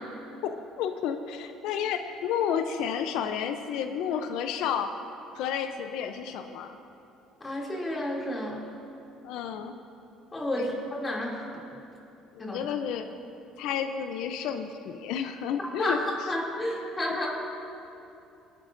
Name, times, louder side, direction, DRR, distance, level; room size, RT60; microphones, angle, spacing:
voice 1, 0.4-4.9 5.3-6.8 9.2-9.7 10.5-10.7 12.3-13.1 13.6-16.0 17.1-17.2, left 8 dB, 75° left, 8 dB, 0.5 m, -31 dB
voice 2, 7.4-8.7 10.3-11.4 12.4-12.7 15.6-17.3, left 1 dB, 25° left, -3 dB, 2.7 m, -31 dB
22.5 x 9.3 x 2.6 m, 2.7 s
supercardioid pair, 95°, 0 cm